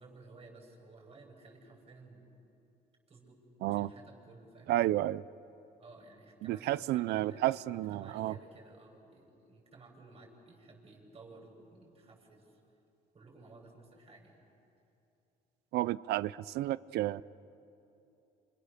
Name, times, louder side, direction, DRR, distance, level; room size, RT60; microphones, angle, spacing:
voice 1, 0.0-2.3 3.1-4.7 5.8-12.6 13.1-14.5, right 3 dB, 35° right, 0 dB, 6.7 m, -55 dB
voice 2, 4.7-5.2 6.4-8.3 15.7-17.2, right 15 dB, 75° right, 18 dB, 0.6 m, -31 dB
30.0 x 27.5 x 6.8 m, 2.8 s
cardioid pair, 110°, 17 cm